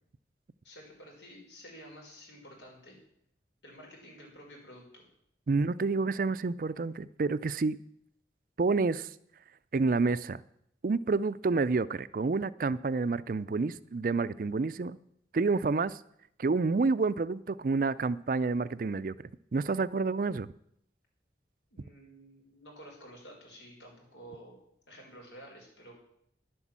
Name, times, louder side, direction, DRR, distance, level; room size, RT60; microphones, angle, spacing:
voice 1, 0.6-3.0 3.6-5.1 21.7-24.6 24.9-25.9, equal, 85° left, 4.9 m, -51 dB
voice 2, 5.5-7.8 8.6-9.1 9.7-10.4 10.8-15.0 15.3-16.0 16.4-20.5, right 4 dB, 50° right, 0.4 m, -29 dB
11.0 x 8.0 x 7.4 m
head